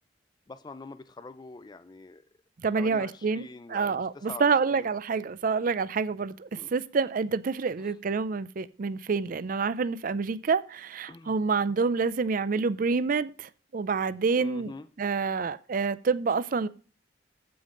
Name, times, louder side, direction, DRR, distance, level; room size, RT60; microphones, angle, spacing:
voice 1, 0.5-2.2 2.8-4.9 6.6-6.7 7.8-7.9 11.1-11.3 14.4-14.9, left 3 dB, 25° left, 0.4 m, -44 dB
voice 2, 2.6-14.7 15.0-16.7, right 5 dB, 50° right, 0.4 m, -28 dB
14.5 x 5.2 x 3.8 m
head